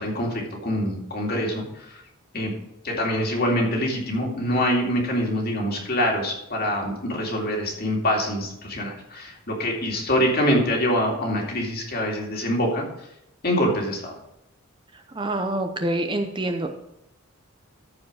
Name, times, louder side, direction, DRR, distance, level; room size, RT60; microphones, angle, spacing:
voice 1, 0.0-2.0 2.3-2.5 2.8-13.1 13.4-14.2, equal, 45° left, 0 dB, 2.3 m, -25 dB
voice 2, 15.1-16.7, right 1 dB, 20° right, 4 dB, 0.7 m, -26 dB
14.0 x 4.9 x 4.8 m, 0.82 s
head